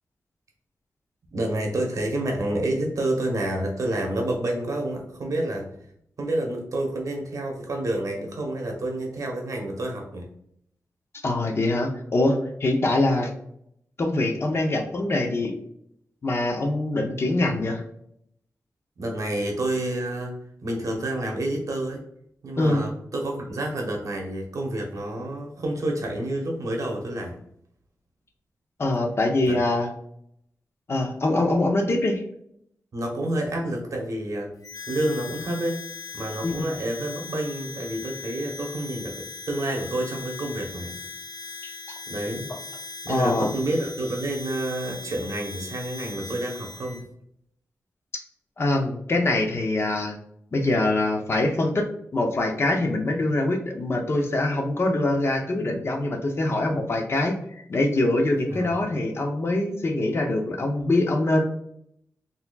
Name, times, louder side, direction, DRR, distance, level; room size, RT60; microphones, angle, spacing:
voice 1, 1.3-5.7 6.2-10.3 19.0-22.0 22.4-27.4 29.4-29.7 32.9-34.5 34.9-35.8 36.1-41.0 42.1-42.5 43.0-47.0 58.5-58.8, right 1 dB, 65° right, 1 dB, 1.0 m, -29 dB
voice 2, 11.2-13.3 14.0-15.5 16.2-17.8 22.6-22.8 28.8-29.9 30.9-32.2 36.4-36.7 43.1-43.5 48.6-50.1 50.5-51.9 52.1-61.4, left 2 dB, 45° left, 2 dB, 0.7 m, -24 dB
Harmonica, 34.6-47.0, left 4 dB, 85° left, 0.4 m, -39 dB
4.1 x 2.7 x 2.3 m, 0.71 s
wide cardioid pair, 115°, 6 cm